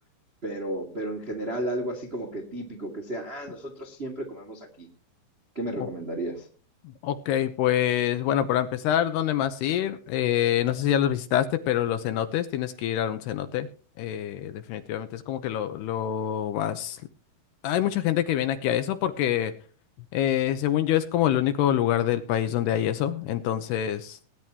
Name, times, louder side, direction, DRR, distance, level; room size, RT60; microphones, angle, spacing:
voice 1, 0.4-4.9 5.5-6.5, right 1 dB, 35° right, 3 dB, 0.9 m, -33 dB
voice 2, 7.0-13.7 14.0-17.0 17.6-19.5 20.1-24.2, left 11 dB, 80° left, 10 dB, 2.6 m, -26 dB
20.0 x 10.5 x 3.0 m, 0.40 s
omnidirectional pair, 5.3 m